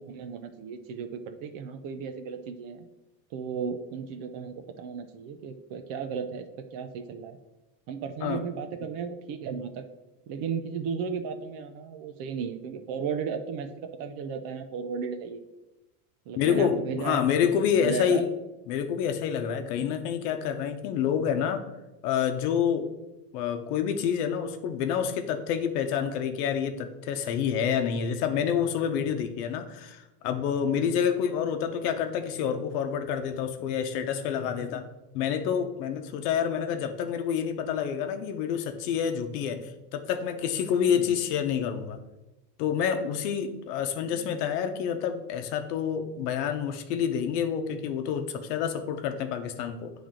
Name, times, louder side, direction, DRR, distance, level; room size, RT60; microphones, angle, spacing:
voice 1, 0.0-2.8 3.3-6.5 6.7-7.4 7.9-9.9 10.3-15.4 16.3-17.4 17.8-18.3 19.9-20.0 30.8-31.0 40.9-41.2, right 6 dB, 45° right, 8 dB, 0.6 m, -35 dB
voice 2, 16.4-18.2 18.7-21.7 22.0-22.9 23.3-34.9 35.1-42.0 42.6-49.9, left 8 dB, 70° left, 7 dB, 0.9 m, -28 dB
8.6 x 3.5 x 3.7 m, 1.0 s
supercardioid pair, 125°, 49 cm